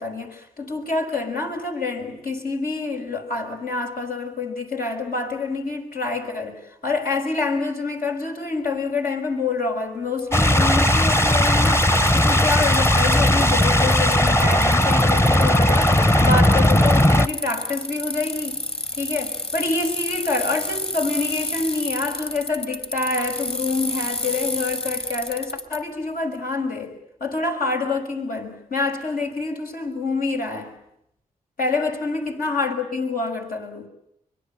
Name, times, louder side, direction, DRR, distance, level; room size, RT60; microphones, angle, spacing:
voice 1, 0.0-18.7 19.0-26.9 27.2-30.7 31.6-33.9, left 3 dB, 80° left, 5.6 m, -27 dB
Bicycle, 10.2-10.3 11.2-11.3 11.5-13.7 13.9-25.8, left 2 dB, 40° left, 3.3 m, -30 dB
sound 1, 10.3-17.3, left 1 dB, 20° left, 1.0 m, -17 dB
25.0 x 22.5 x 8.9 m
cardioid pair, 60°, 15 cm